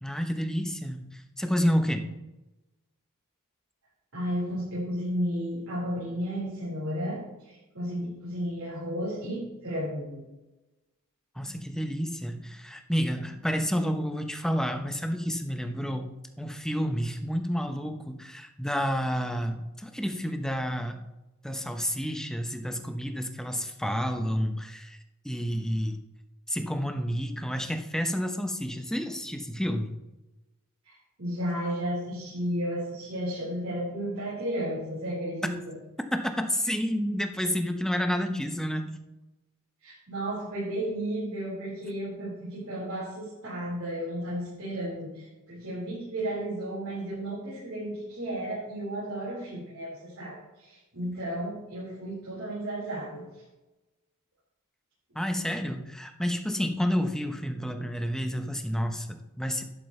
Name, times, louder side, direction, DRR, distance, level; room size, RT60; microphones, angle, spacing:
voice 1, 0.0-2.2 11.4-21.0 21.4-25.0 25.2-26.0 26.5-29.9 36.1-38.9 55.1-59.6, equal, 5° left, 6 dB, 0.9 m, -30 dB
voice 2, 4.1-10.2 30.8-35.8 39.8-53.2, equal, 80° right, -8 dB, 4.5 m, -33 dB
11.5 x 11.5 x 3.3 m, 1.0 s
head